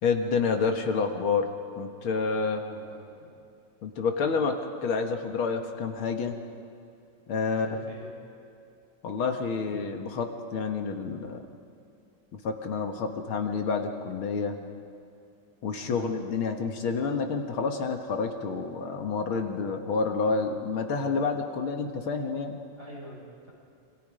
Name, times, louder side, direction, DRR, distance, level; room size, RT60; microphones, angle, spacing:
voice 1, 0.0-1.5 1.8-2.6 3.8-6.4 7.3-7.8 9.0-11.5 12.3-14.6 15.6-22.6, left 5 dB, 75° left, 4 dB, 2.4 m, -29 dB
voice 2, 2.4-3.4 7.5-8.1 15.8-16.1 22.7-23.5, equal, 50° right, -4 dB, 7.9 m, -47 dB
27.5 x 26.0 x 5.2 m, 2.6 s
omnidirectional pair, 2.3 m